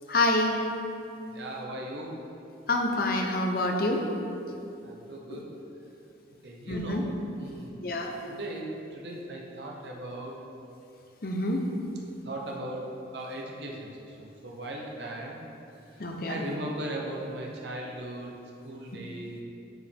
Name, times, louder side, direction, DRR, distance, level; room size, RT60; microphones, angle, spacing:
voice 1, 0.1-0.6 2.7-4.0 5.3-5.4 6.7-7.0 7.8-8.1 11.2-11.6 16.0-16.4, left 2 dB, 55° left, 2 dB, 0.8 m, -27 dB
voice 2, 1.3-2.2 4.8-5.5 6.4-7.9 8.3-10.4 12.2-15.4 15.9-18.3 18.6-19.4, right 1 dB, 70° right, -1 dB, 0.9 m, -38 dB
9.4 x 5.0 x 3.5 m, 2.7 s
head